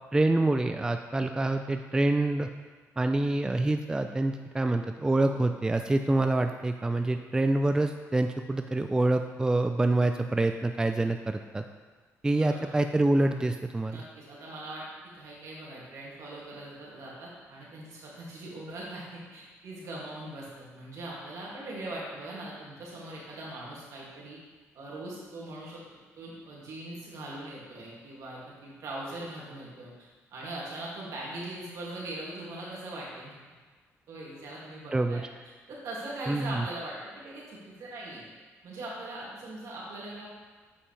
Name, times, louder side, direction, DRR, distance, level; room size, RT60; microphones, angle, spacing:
voice 1, 0.1-2.5 3.0-11.6 12.2-14.0 34.9-35.3 36.3-36.7, right 2 dB, 15° right, 6 dB, 0.3 m, -26 dB
voice 2, 12.4-12.8 13.9-14.8 15.1-24.4 24.7-25.8 26.2-33.4 34.1-35.3 35.7-38.2 38.6-40.3, right 1 dB, 75° right, -5 dB, 2.3 m, -41 dB
8.0 x 5.6 x 3.3 m, 1.4 s
cardioid pair, 90°, 6 cm